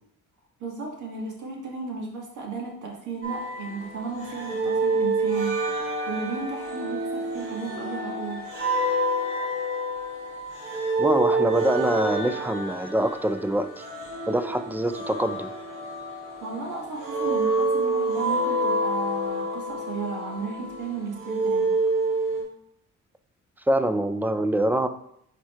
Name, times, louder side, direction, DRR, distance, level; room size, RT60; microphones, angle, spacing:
voice 1, 0.6-8.4 16.3-21.8, right 4 dB, 75° right, -1 dB, 1.9 m, -34 dB
sound 1, 3.2-22.4, right 2 dB, 45° right, 2.3 m, -28 dB
voice 2, 11.0-13.9 14.3-15.5 23.7-24.9, right 1 dB, 5° right, 10 dB, 0.4 m, -24 dB
5.0 x 4.4 x 4.4 m, 0.72 s
cardioid pair, 90°, 30 cm